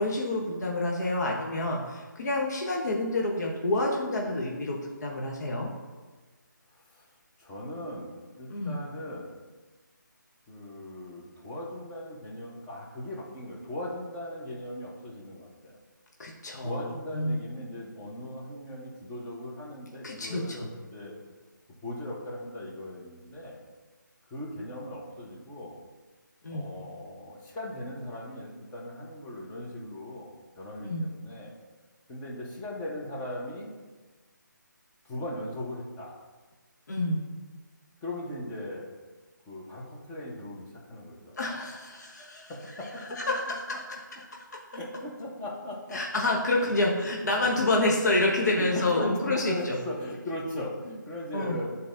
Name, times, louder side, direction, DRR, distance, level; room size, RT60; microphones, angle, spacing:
voice 1, 0.0-5.7 8.5-8.8 16.2-16.8 17.1-17.4 20.0-20.6 26.4-26.7 30.8-31.1 36.9-37.2 41.4-42.5 43.2-44.0 45.9-49.8 51.3-51.6, left 2 dB, 55° left, -1 dB, 1.0 m, -28 dB
voice 2, 6.7-7.0 7.4-9.4 10.5-15.8 16.6-21.2 21.8-23.6 24.3-25.8 26.5-31.6 32.1-33.7 35.0-36.2 38.0-38.9 39.5-41.4 42.5-43.6 44.7-46.0 46.5-46.7 47.5-47.6 48.4-51.8, left 1 dB, 15° left, -3 dB, 1.0 m, -38 dB
11.5 x 4.1 x 2.6 m, 1.3 s
figure-of-eight pair, 150°, 11 cm